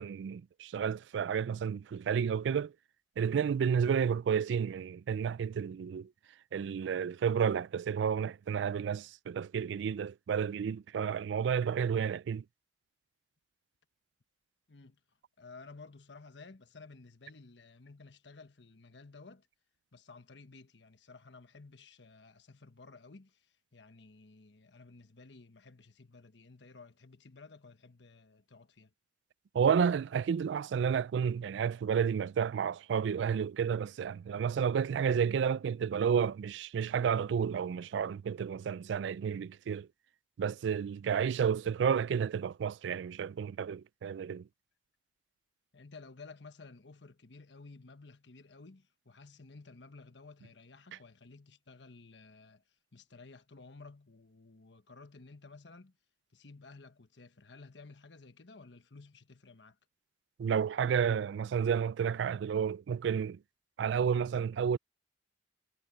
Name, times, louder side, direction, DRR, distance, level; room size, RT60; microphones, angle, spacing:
voice 1, 0.0-2.7 3.2-6.1 6.5-12.4 29.5-39.9 40.4-44.5 60.4-63.4 63.8-64.8, right 7 dB, 85° right, 0.3 m, -31 dB
voice 2, 14.7-15.0 15.4-19.5 19.9-28.9 45.7-52.6 52.9-56.0 56.3-59.8, left 3 dB, 85° left, 1.3 m, -54 dB
head